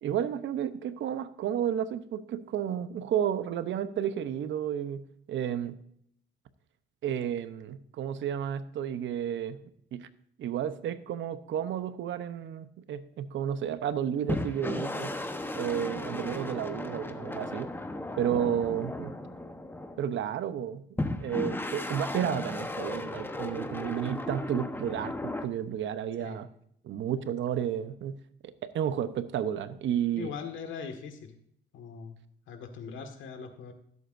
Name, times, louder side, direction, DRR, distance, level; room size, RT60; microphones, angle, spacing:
voice 1, 0.0-5.0 5.3-5.8 7.0-9.6 9.9-10.1 10.4-15.1 15.6-17.7 18.2-19.1 20.0-26.5 26.8-28.2 28.4-30.3, right 9 dB, 70° right, 12 dB, 0.9 m, -32 dB
sound 1, 14.3-20.2 21.0-25.5, left 1 dB, 10° left, 1.0 m, -35 dB
voice 2, 30.2-31.3 31.7-32.2 32.5-33.7, left 6 dB, 75° left, 6 dB, 1.8 m, -40 dB
16.0 x 8.1 x 2.6 m, 0.70 s
cardioid pair, 90°, 20 cm